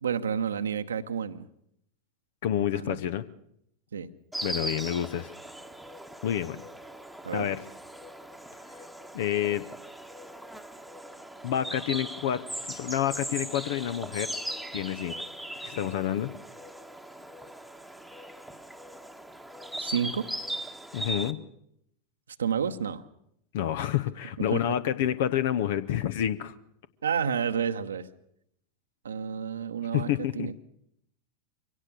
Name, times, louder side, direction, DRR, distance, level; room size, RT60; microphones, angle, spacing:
voice 1, 0.0-1.5 2.5-3.0 3.9-4.1 7.2-7.5 19.8-20.3 22.4-23.0 24.4-24.6 27.0-28.1 29.0-30.1 30.4-30.6, right 7 dB, 70° right, 8 dB, 1.0 m, -30 dB
voice 2, 2.4-3.2 4.4-5.3 6.2-6.6 7.3-7.6 8.7-8.8 9.1-9.7 11.4-14.3 14.7-15.2 15.6-16.3 20.9-21.4 23.5-26.5 29.9-30.5, left 10 dB, 55° left, 15 dB, 0.9 m, -28 dB
Insect, 4.3-21.3, right 1 dB, ahead, 1.3 m, -39 dB
24.0 x 17.5 x 6.7 m, 0.74 s
figure-of-eight pair, 90°, 0 cm